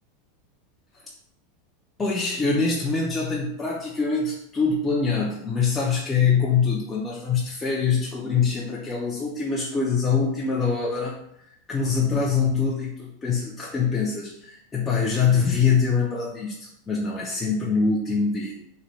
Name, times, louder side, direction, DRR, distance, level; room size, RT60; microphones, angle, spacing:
voice 1, 2.0-11.2 11.7-18.5, left 5 dB, 15° left, -4 dB, 0.4 m, -24 dB
3.0 x 2.2 x 3.9 m, 0.75 s
supercardioid pair, 160°, 0 cm